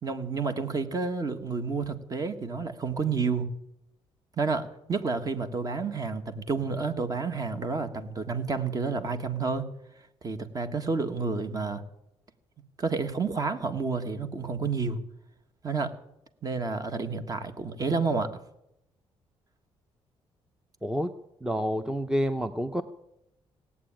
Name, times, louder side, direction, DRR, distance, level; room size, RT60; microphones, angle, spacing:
voice 1, 0.0-3.5 4.4-9.7 10.2-11.8 12.8-15.0 15.6-15.9 16.4-18.3, right 4 dB, 35° right, 8 dB, 1.7 m, -30 dB
voice 2, 20.8-21.1 21.4-22.8, equal, 5° right, 10 dB, 0.7 m, -28 dB
17.5 x 8.6 x 9.0 m, 0.84 s
cardioid pair, 100°, 10 cm